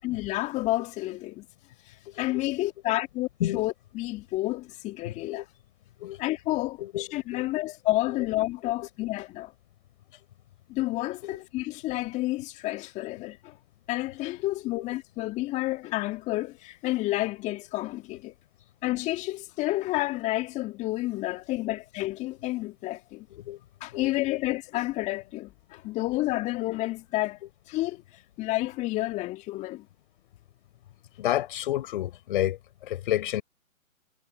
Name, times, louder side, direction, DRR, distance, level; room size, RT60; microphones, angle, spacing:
voice 1, 0.0-1.5 2.2-5.4 6.2-9.5 10.7-13.5 13.9-18.3 18.8-23.3 23.8-27.4 27.7-28.0 28.4-29.9, left 18 dB, 15° left, 2.1 m, -30 dB
voice 2, 2.1-2.4 3.4-3.6 5.0-5.5 6.0-6.2 6.8-7.5 8.1-8.2 8.6-8.7 11.2-11.4 14.7-14.8 23.3-23.6 23.9-24.4 31.2-33.4, left 13 dB, 40° left, 5.4 m, -31 dB
figure-of-eight pair, 140°, 41 cm